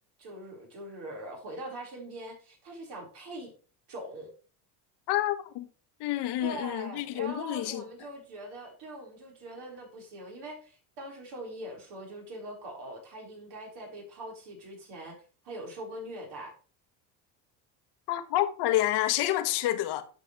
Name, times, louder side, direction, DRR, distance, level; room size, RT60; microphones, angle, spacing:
voice 1, 0.2-3.5 3.9-4.3 6.4-15.2 15.4-16.5, right 1 dB, 60° right, 4.8 m, -42 dB
voice 2, 5.1-5.7 6.0-7.8 18.1-20.0, left 14 dB, 60° left, 1.3 m, -28 dB
11.5 x 5.5 x 3.3 m
supercardioid pair, 95°, 45 cm